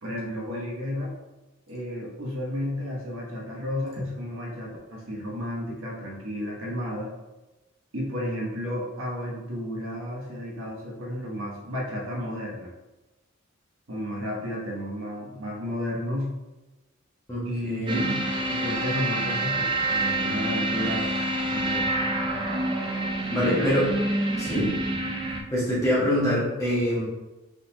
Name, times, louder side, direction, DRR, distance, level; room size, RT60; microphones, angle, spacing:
voice 1, 0.0-1.1 1.7-7.1 7.9-12.7 13.9-16.3 17.4-21.1 21.5-21.9 23.4-23.7 24.5-24.8, equal, 80° right, -3 dB, 1.2 m, -32 dB
voice 2, 17.3-18.1 23.3-23.9 24.4-24.7 25.5-27.1, equal, 15° left, -8 dB, 1.5 m, -25 dB
sound 1, 17.9-25.4, right 2 dB, 25° right, 0.5 m, -27 dB
4.2 x 4.0 x 2.7 m, 1.1 s
head